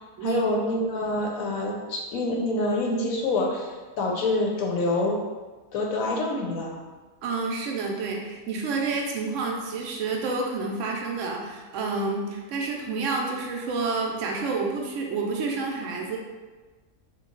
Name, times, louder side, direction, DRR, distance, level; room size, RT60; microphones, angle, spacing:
voice 1, 0.2-5.2 5.7-6.8, left 2 dB, 70° left, 0 dB, 0.9 m, -26 dB
voice 2, 7.2-16.2, right 3 dB, 65° right, 0 dB, 0.8 m, -29 dB
3.0 x 2.3 x 3.7 m, 1.3 s
omnidirectional pair, 1.6 m